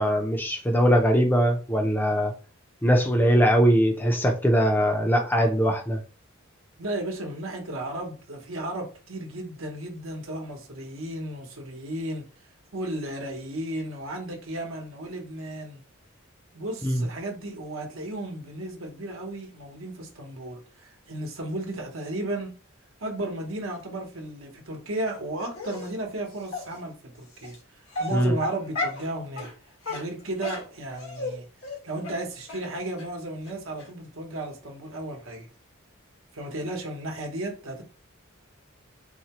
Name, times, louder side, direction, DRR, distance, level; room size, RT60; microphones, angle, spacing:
voice 1, 0.0-2.3 2.8-6.0 16.8-17.0 28.1-28.3, equal, 10° left, 0.6 m, -21 dB
voice 2, 6.8-12.2 12.7-15.8 16.5-22.5 23.0-29.5 29.9-35.5 36.3-37.8, right 1 dB, 70° right, 1.0 m, -34 dB
Dog, 25.5-25.9 26.5-26.6 27.4-27.6 27.9-29.1 29.4-29.5 29.8-31.3 31.6-31.8 32.0-32.2 32.5-32.6 33.0-33.1 33.4-33.5 33.8-33.9, left 3 dB, 90° left, 1.8 m, -33 dB
4.2 x 2.2 x 2.9 m
head